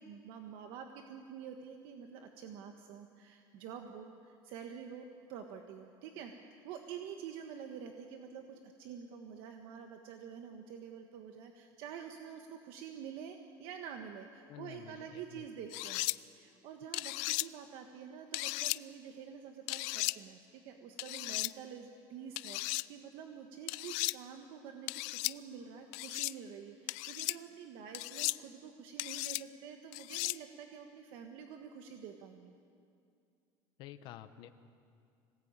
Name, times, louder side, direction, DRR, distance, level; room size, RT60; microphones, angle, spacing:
voice 1, 0.0-6.3 6.6-16.1 16.3-32.5, right 7 dB, 65° right, 4 dB, 1.5 m, -48 dB
voice 2, 14.5-15.4 33.8-34.5, left 12 dB, 55° left, 10 dB, 1.2 m, -50 dB
sound 1, 15.7-16.2 16.9-17.5 18.3-18.8 19.7-20.2 21.0-21.5 22.4-22.8 23.7-24.1 24.9-25.3 25.9-26.3 26.9-27.4 27.9-28.4 29.0-29.4 29.9-30.4, left 23 dB, 85° left, 0.5 m, -35 dB
25.5 x 18.5 x 8.9 m, 2.4 s
cardioid pair, 175°, 9 cm